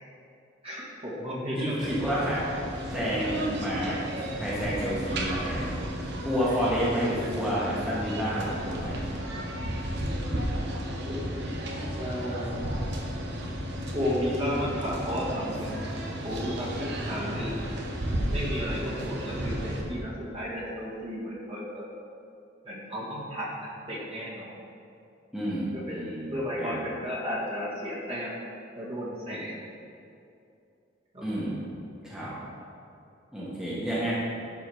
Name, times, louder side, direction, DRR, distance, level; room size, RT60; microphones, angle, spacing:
voice 1, 0.6-1.9 11.1-11.5 11.9-12.6 13.9-15.7 16.2-16.7 17.1-17.6 18.3-21.8 22.6-24.5 25.9-26.0 26.3-28.3 28.8-29.5 31.1-31.2, equal, 30° right, -6 dB, 1.8 m, -33 dB
voice 2, 1.6-2.4 2.8-4.0 4.4-5.8 6.2-9.1 25.3-26.7 31.2-31.6 32.0-32.3 33.3-34.1, equal, 5° right, -9 dB, 1.5 m, -30 dB
sound 1, 1.8-19.8, equal, 60° right, 1.1 m, -33 dB
11.0 x 4.7 x 5.0 m, 2.6 s
head